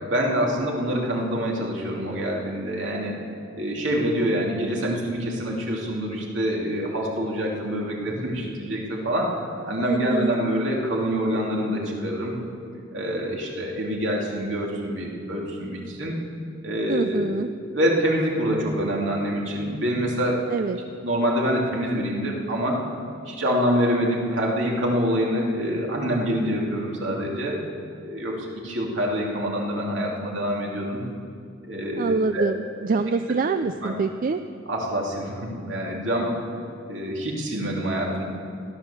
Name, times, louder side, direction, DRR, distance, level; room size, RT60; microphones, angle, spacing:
voice 1, 0.1-3.2 3.5-12.4 12.9-16.2 16.6-17.3 17.7-20.5 21.0-22.8 23.2-27.6 28.0-31.0 31.7-32.4 33.8-33.9 34.7-36.3 36.9-38.2, equal, 65° right, -2 dB, 2.9 m, -26 dB
voice 2, 9.8-10.4 16.9-17.5 20.5-20.8 32.0-34.4, right 4 dB, 45° right, 9 dB, 0.4 m, -25 dB
16.5 x 11.5 x 7.0 m, 2.4 s
head